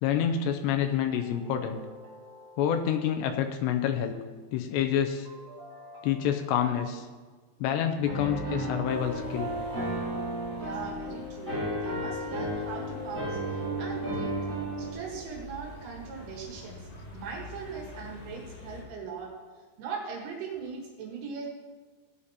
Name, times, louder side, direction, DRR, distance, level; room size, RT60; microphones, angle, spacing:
voice 1, 0.0-1.8 2.6-4.2 4.5-5.3 6.0-7.1 7.6-9.5, left 9 dB, 85° left, 5 dB, 2.6 m, -28 dB
sound 1, 1.1-3.6 5.3-7.1 8.5-11.2 12.5-17.1, right 2 dB, 45° right, 2.2 m, -46 dB
Piano, 8.1-14.9, equal, 20° right, 2.7 m, -33 dB
sound 2, 8.8-18.8, left 1 dB, 60° left, 5.2 m, -47 dB
voice 2, 10.6-14.3 14.8-19.3 19.8-21.5, right 5 dB, 80° right, 0 dB, 3.9 m, -40 dB
17.0 x 11.5 x 2.8 m, 1.4 s
omnidirectional pair, 5.5 m